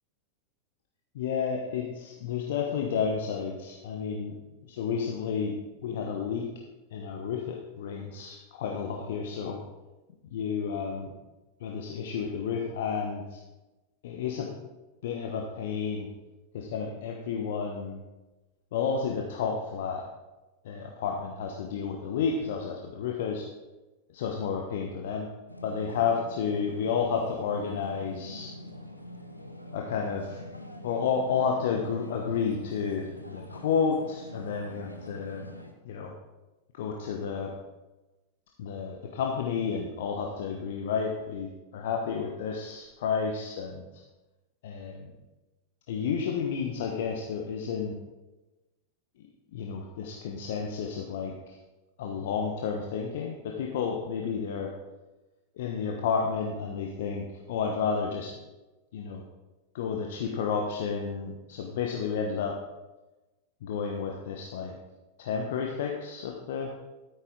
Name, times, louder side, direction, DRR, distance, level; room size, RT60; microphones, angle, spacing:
voice 1, 1.1-4.4 4.6-5.5 5.8-6.5 6.9-9.6 10.3-11.1 11.6-13.4 14.0-14.5 15.0-16.1 16.5-18.0 18.7-20.0 20.6-23.5 24.1-25.3 25.6-28.5 29.7-30.4 30.8-35.5 35.8-36.1 36.7-37.5 38.6-43.8 44.6-45.1 45.9-48.0 49.5-51.6 52.0-54.7 55.6-58.3 58.9-59.2 59.7-62.6 63.6-64.8 65.2-66.7, left 6 dB, 55° left, 1 dB, 1.1 m, -31 dB
sound 1, 25.5-35.7, left 1 dB, 90° left, 0.9 m, -44 dB
13.0 x 8.9 x 3.8 m, 1.1 s
figure-of-eight pair, 90°, 0 cm